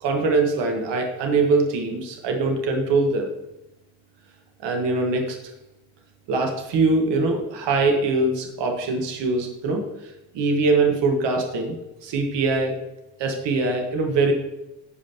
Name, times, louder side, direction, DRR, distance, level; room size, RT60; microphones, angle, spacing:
voice 1, 0.0-3.3 4.6-5.4 6.3-9.8 10.3-11.8 12.0-12.7 13.2-14.3, right 3 dB, 75° right, 2 dB, 1.4 m, -22 dB
14.5 x 5.3 x 2.9 m, 0.94 s
hypercardioid pair, 45°, 43 cm